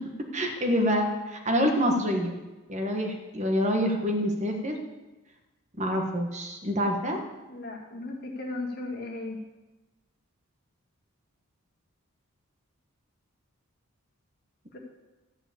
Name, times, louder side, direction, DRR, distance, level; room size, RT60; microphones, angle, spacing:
voice 1, 0.3-2.3 2.7-4.8 5.8-7.2, equal, 30° right, 3 dB, 1.3 m, -26 dB
voice 2, 7.5-9.4 14.7-14.8, left 2 dB, 45° left, -1 dB, 2.0 m, -36 dB
14.0 x 4.9 x 8.5 m, 1.1 s
head